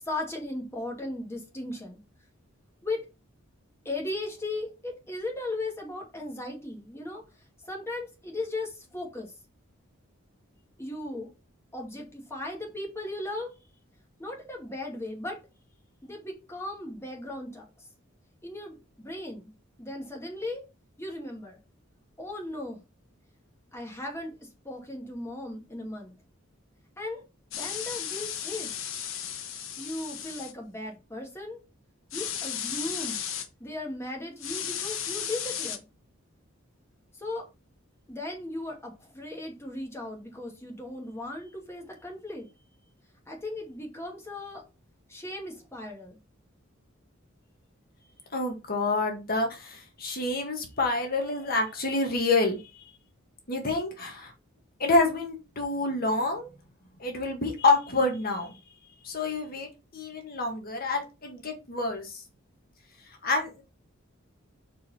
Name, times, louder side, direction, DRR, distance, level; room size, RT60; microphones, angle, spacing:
voice 1, 0.0-2.0 2.8-3.1 3.8-7.2 7.6-9.3 10.8-11.3 11.7-13.5 14.2-15.4 16.0-17.7 18.4-19.5 19.8-20.6 21.0-21.6 22.2-22.8 23.7-26.1 27.0-27.2 27.5-28.7 29.8-31.6 32.1-33.2 33.6-35.8 37.2-37.4 38.1-42.5 43.3-44.6 45.1-46.2, left 2 dB, 15° left, 0 dB, 2.4 m, -37 dB
sound 1, 27.5-30.5 32.1-33.5 34.4-35.8, left 9 dB, 75° left, 1.2 m, -34 dB
voice 2, 48.3-52.8 53.5-54.3 54.8-56.5 57.0-58.6 59.0-62.2 63.2-63.6, left 3 dB, 45° left, 3 dB, 1.7 m, -28 dB
5.4 x 4.8 x 5.7 m, 0.28 s
head